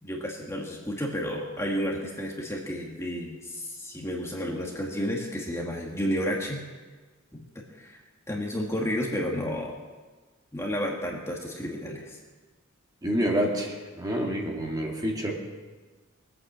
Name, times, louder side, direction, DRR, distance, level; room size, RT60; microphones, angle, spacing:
voice 1, 0.0-6.6 7.3-7.4 7.7-8.0 8.3-9.7 10.5-12.2, equal, 15° left, -1 dB, 1.9 m, -31 dB
voice 2, 13.0-15.4, equal, 20° right, -1 dB, 2.2 m, -28 dB
21.0 x 8.8 x 7.4 m, 1.3 s
head